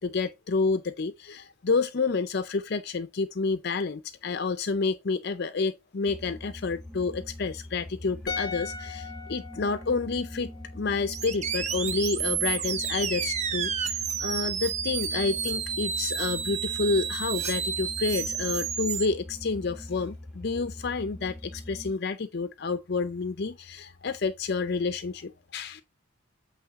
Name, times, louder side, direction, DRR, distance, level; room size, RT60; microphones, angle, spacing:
voice 1, 0.0-25.8, left 4 dB, 50° left, 0.5 m, -29 dB
sound 1, 6.1-21.9, left 1 dB, ahead, 1.3 m, -43 dB
sound 2, 8.3-11.5 11.7-11.9, left 5 dB, 20° left, 0.9 m, -40 dB
sound 3, 11.1-19.1, right 8 dB, 35° right, 0.6 m, -31 dB
8.6 x 3.1 x 4.8 m
head